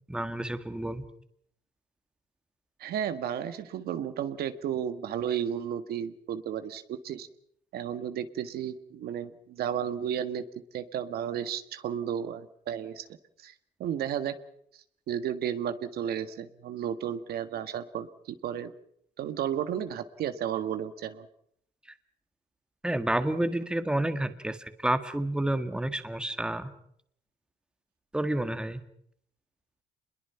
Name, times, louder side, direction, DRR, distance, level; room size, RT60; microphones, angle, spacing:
voice 1, 0.1-1.0 22.8-26.7 28.1-28.8, right 1 dB, 5° right, 9 dB, 1.8 m, -29 dB
voice 2, 2.8-7.3 7.7-10.4 10.7-13.1 13.4-13.5 13.8-14.3 15.1-18.7 19.2-21.3, right 9 dB, 70° right, 10 dB, 1.7 m, -33 dB
27.5 x 22.0 x 5.8 m, 0.69 s
cardioid pair, 110°, 17 cm